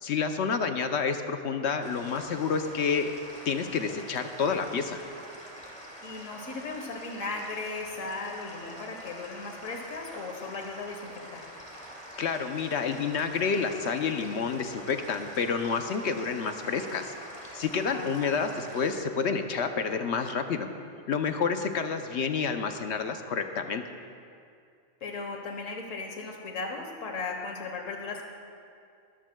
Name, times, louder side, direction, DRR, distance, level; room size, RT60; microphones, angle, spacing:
voice 1, 0.0-3.1 3.4-5.0 12.2-17.1 17.5-20.7 21.1-23.8, left 5 dB, 65° left, 7 dB, 0.9 m, -29 dB
sound 1, 1.8-19.0, equal, 5° left, 2.3 m, -45 dB
voice 2, 6.0-11.4 17.9-18.5 25.0-28.2, left 3 dB, 90° left, 2 dB, 1.5 m, -37 dB
21.5 x 13.5 x 2.2 m, 2.3 s
omnidirectional pair, 1.3 m